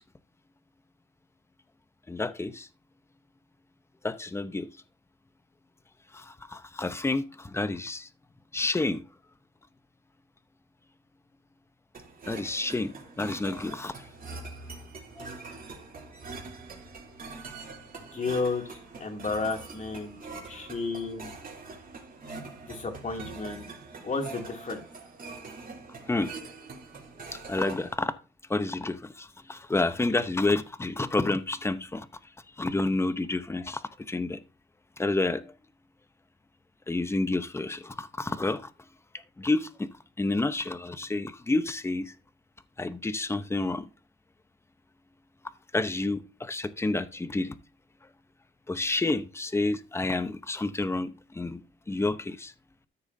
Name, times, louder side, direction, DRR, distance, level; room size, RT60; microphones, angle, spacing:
voice 1, 2.1-2.7 4.0-4.7 6.1-8.1 8.5-9.0 12.3-14.0 15.2-15.3 26.1-26.3 27.3-28.1 28.5-32.1 32.6-33.8 34.1-34.4 35.0-35.5 36.9-38.7 39.4-39.9 40.2-42.1 42.8-43.9 45.7-47.5 48.7-51.6 51.9-52.5, left 2 dB, 15° left, 0.8 m, -29 dB
sound 1, 11.9-27.9, right 4 dB, 45° right, 3.1 m, -44 dB
voice 2, 18.1-18.6 19.0-20.1 20.5-21.3 22.7-23.7 24.0-24.8, left 4 dB, 35° left, 2.6 m, -32 dB
13.5 x 6.8 x 2.7 m
cardioid pair, 90°, 20 cm